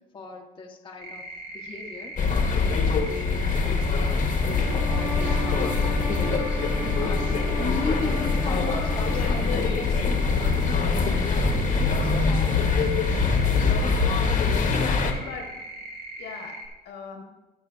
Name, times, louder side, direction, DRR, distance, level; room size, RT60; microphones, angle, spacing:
voice 1, 0.1-1.2 1.5-2.2 2.5-9.6 10.3-10.7 11.4-13.2 14.2-15.1, left 4 dB, 30° left, 0 dB, 1.2 m, -38 dB
sound 1, 1.0-16.7, right 1 dB, 75° right, 1.7 m, -40 dB
sound 2, 2.2-15.1, left 4 dB, 50° left, 1.4 m, -23 dB
sound 3, 4.4-9.8, right 2 dB, 10° right, 1.0 m, -36 dB
voice 2, 14.5-15.6 16.2-17.2, left 5 dB, 80° left, 3 dB, 1.7 m, -40 dB
18.0 x 6.2 x 2.7 m, 1.1 s
cardioid pair, 110°, 17 cm